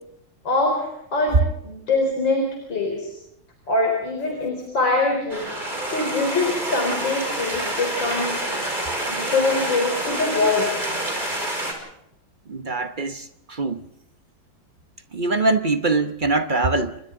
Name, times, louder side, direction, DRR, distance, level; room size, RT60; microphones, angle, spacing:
voice 1, 0.4-3.1 3.7-5.5 5.9-8.6 9.1-10.7, left 3 dB, 60° left, 4.9 m, -23 dB
sound 1, 5.3-11.7, right 1 dB, 20° right, 5.2 m, -27 dB
voice 2, 12.5-13.8 15.1-17.0, right 3 dB, 50° right, 0.5 m, -23 dB
29.5 x 25.5 x 3.8 m
omnidirectional pair, 2.3 m